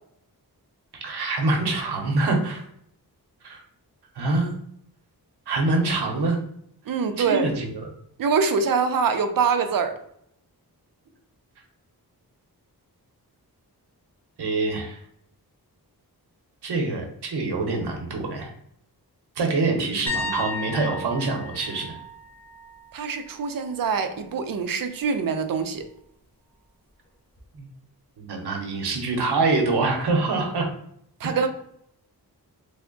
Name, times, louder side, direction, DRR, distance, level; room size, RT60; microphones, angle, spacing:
voice 1, 0.9-2.6 3.4-3.6 4.2-4.5 5.5-6.4 7.2-7.8 14.4-15.0 16.6-18.5 19.4-22.0 27.6-27.7 28.2-30.7 31.2-31.4, right 3 dB, 90° right, 0.8 m, -25 dB
voice 2, 6.9-7.5 8.2-10.0 22.9-25.8 31.2-31.5, right 5 dB, 60° right, 0.5 m, -24 dB
sound 1, 20.1-23.8 24.1-24.5 27.4-27.5, left 2 dB, 5° left, 0.8 m, -35 dB
3.4 x 2.0 x 3.7 m
wide cardioid pair, 110°, 38 cm